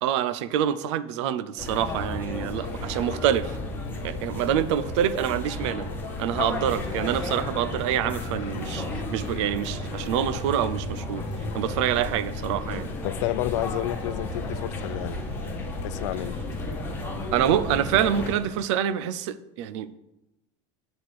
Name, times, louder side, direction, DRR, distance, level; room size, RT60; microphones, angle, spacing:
voice 1, 0.0-3.6 4.0-5.9 6.2-11.2 11.5-12.9 17.3-20.0, right 10 dB, 80° right, 0.6 m, -26 dB
dubai goldmarket, 1.6-18.3, left 1 dB, 15° left, 1.1 m, -33 dB
sound 1, 2.4-18.5, left 3 dB, 55° left, 1.6 m, -40 dB
voice 2, 13.0-15.2 15.8-16.4, left 16 dB, 85° left, 0.4 m, -30 dB
8.4 x 4.3 x 6.4 m
cardioid pair, 165°, 15 cm